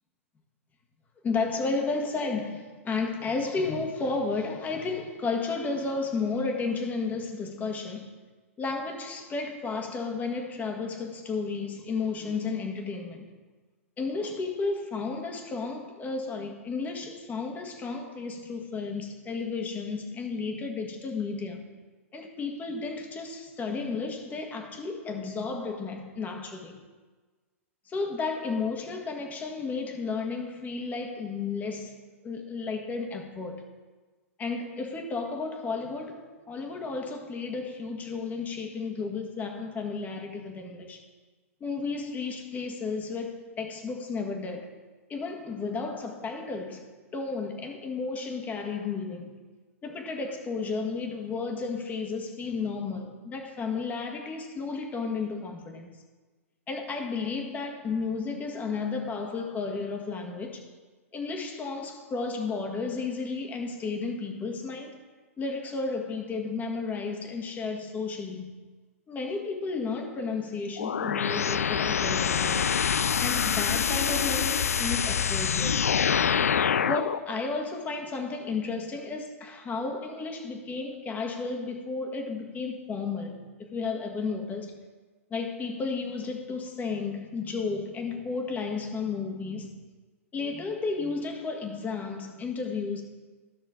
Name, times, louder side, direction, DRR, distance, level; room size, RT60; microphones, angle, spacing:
voice 1, 1.2-8.1 8.6-13.2 14.0-21.7 22.1-26.8 27.9-31.9 32.2-33.6 34.4-41.0 41.6-44.7 45.1-46.9 47.1-49.3 49.8-55.9 56.7-60.7 61.1-65.0 65.4-68.5 69.1-72.8 73.2-75.9 76.8-83.4 83.7-84.8 85.3-89.8 90.3-93.0, left 4 dB, 20° left, 1.7 m, -33 dB
sound 1, 70.8-77.2, left 7 dB, 80° left, 0.3 m, -26 dB
14.0 x 6.4 x 3.8 m
hypercardioid pair, 110°, 8 cm